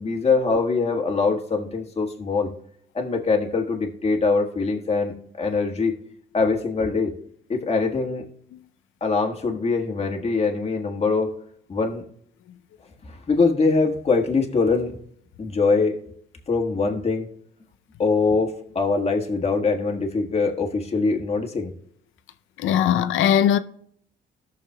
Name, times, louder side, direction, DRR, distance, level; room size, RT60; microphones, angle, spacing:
voice 1, 0.0-2.5 2.9-5.9 6.3-7.1 7.5-8.3 9.0-11.3 11.7-12.0 13.1-15.0 15.4-16.0 16.5-17.3 18.0-21.7, left 4 dB, 30° left, 1.5 m, -23 dB
voice 2, 22.6-23.6, left 10 dB, 80° left, 0.5 m, -19 dB
17.5 x 6.4 x 2.2 m
cardioid pair, 90°, 20 cm